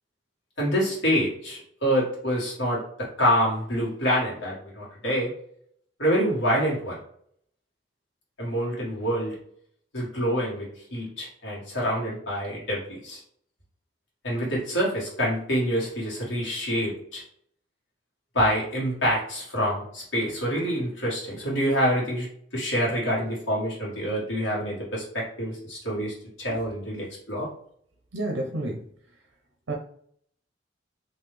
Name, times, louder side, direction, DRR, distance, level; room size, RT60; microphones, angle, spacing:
voice 1, 0.6-5.3 6.0-7.0 8.4-9.3 9.9-13.2 14.2-17.2 18.3-22.3 22.5-27.5, equal, 80° left, -5 dB, 1.7 m, -26 dB
voice 2, 28.1-28.8 29.7-29.8, right 2 dB, 85° right, 1 dB, 0.7 m, -29 dB
3.9 x 2.7 x 3.2 m, 0.64 s
head